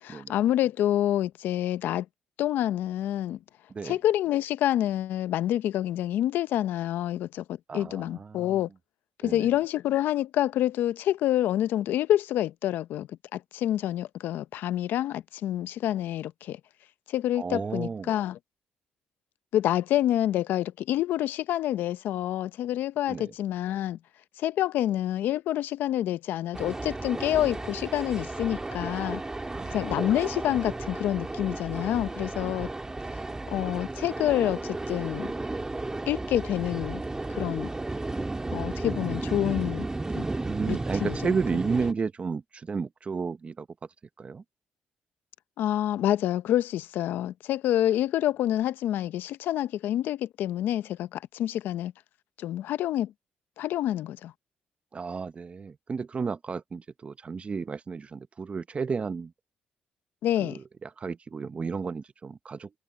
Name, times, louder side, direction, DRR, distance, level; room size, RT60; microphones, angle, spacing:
voice 1, 0.0-2.1 2.4-3.4 3.8-7.4 7.7-8.7 9.2-16.6 17.1-18.4 19.5-24.0 24.4-29.2 29.7-32.7 33.5-35.3 36.1-37.0 37.3-37.7 38.5-39.8 40.1-40.3 40.7-41.3 45.6-51.9 52.4-53.1 53.6-54.3 60.2-60.6, left 12 dB, 80° left, 0.7 m, -27 dB
voice 2, 7.7-8.6 9.2-9.5 17.4-18.1 23.1-23.3 29.5-30.2 40.4-43.7 44.2-44.4 54.9-59.3 60.4-62.8, right 5 dB, 35° right, 0.9 m, -33 dB
sound 1, 26.5-41.9, right 2 dB, 20° right, 2.0 m, -34 dB
cardioid pair, 80°, 3 cm